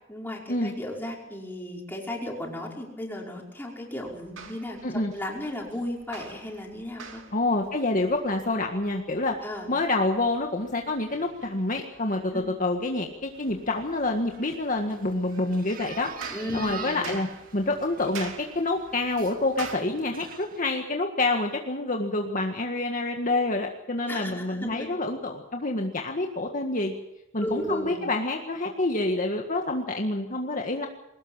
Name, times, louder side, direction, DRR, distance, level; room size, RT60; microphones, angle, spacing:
voice 1, 0.1-7.2 9.4-9.7 12.3-12.5 16.3-17.1 24.1-24.9 27.4-28.0, left 1 dB, 10° left, -2 dB, 5.5 m, -35 dB
sound 1, 4.0-19.8, right 5 dB, 85° right, 2.7 m, -47 dB
voice 2, 7.3-9.4 9.7-17.3 17.5-26.9 27.3-30.9, left 2 dB, 40° left, 2 dB, 1.8 m, -27 dB
sound 2, 13.3-20.6, right 6 dB, 45° right, 1.9 m, -45 dB
22.5 x 18.5 x 7.4 m, 0.88 s
head